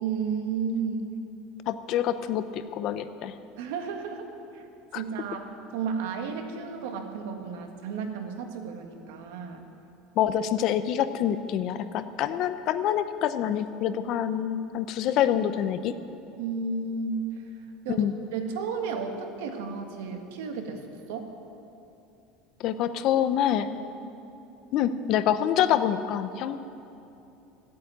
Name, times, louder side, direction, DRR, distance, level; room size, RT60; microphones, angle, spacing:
voice 1, 0.0-1.1 3.6-4.6 4.9-5.5 5.7-9.6 16.4-17.4 17.8-21.3, right 5 dB, 90° right, 4 dB, 1.7 m, -33 dB
voice 2, 1.7-3.3 4.9-5.0 10.2-15.9 17.9-18.1 22.6-23.7 24.7-26.6, left 10 dB, 45° left, 11 dB, 0.6 m, -26 dB
15.0 x 8.4 x 9.4 m, 2.8 s
cardioid pair, 165°, 0 cm